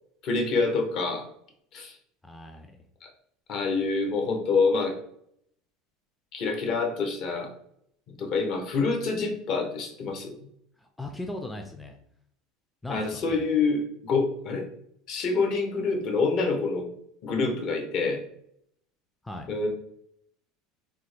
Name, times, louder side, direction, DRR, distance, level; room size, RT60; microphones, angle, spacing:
voice 1, 0.2-1.2 1.7-2.0 3.5-5.0 6.3-7.5 8.1-10.4 12.9-14.7 15.1-16.9 17.2-18.2 19.5-19.7, left 4 dB, 50° left, 3 dB, 0.9 m, -26 dB
voice 2, 2.2-2.8 10.8-12.0 12.8-13.4 19.2-19.5, left 1 dB, 5° left, 3 dB, 0.4 m, -38 dB
3.4 x 2.1 x 3.2 m, 0.69 s
supercardioid pair, 110°, 0 cm